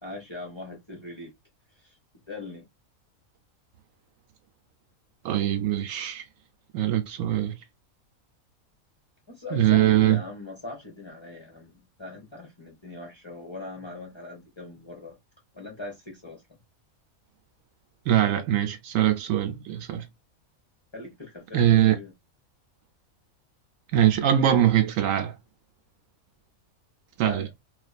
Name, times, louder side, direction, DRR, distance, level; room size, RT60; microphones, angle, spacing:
voice 1, 0.0-1.3 1.8-1.9 2.3-2.6 9.3-15.2 15.5-16.4 20.9-22.1 27.2-27.5, left 2 dB, 30° left, 0.5 m, -40 dB
voice 2, 5.2-6.2 6.7-7.5 9.5-10.2 18.1-20.1 21.5-22.0 23.9-25.3 27.2-27.5, right 11 dB, 75° right, 0.9 m, -22 dB
2.5 x 2.4 x 2.3 m
omnidirectional pair, 1.5 m